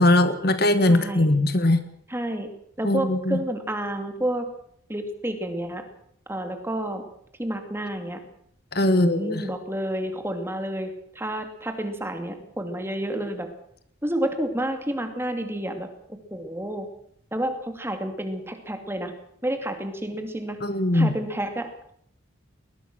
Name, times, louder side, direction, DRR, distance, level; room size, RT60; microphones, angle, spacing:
voice 1, 0.0-1.8 2.8-3.4 8.7-9.5 20.6-21.1, left 1 dB, 50° left, 11 dB, 1.6 m, -20 dB
voice 2, 0.9-1.3 2.1-2.5 2.8-4.5 4.9-5.8 6.3-7.0 7.4-8.2 8.8-13.5 14.0-15.9 16.3-16.9 17.3-19.1 19.4-20.6 20.9-21.9, right 1 dB, 10° right, 6 dB, 2.7 m, -30 dB
20.5 x 20.5 x 6.3 m, 0.68 s
head